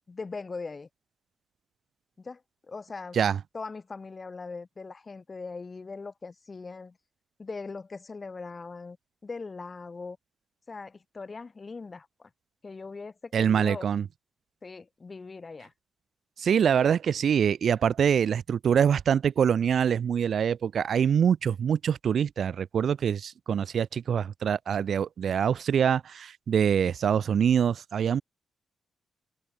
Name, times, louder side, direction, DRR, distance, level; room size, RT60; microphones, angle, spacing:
voice 1, 0.1-0.9 2.2-3.2 3.5-7.0 7.4-9.0 9.2-10.2 10.7-12.3 12.6-13.9 14.6-15.7, left 4 dB, 30° left, 1.9 m, -40 dB
voice 2, 13.3-14.0 16.4-28.2, right 8 dB, 60° right, 0.8 m, -24 dB
open air
cardioid pair, 110°, 0 cm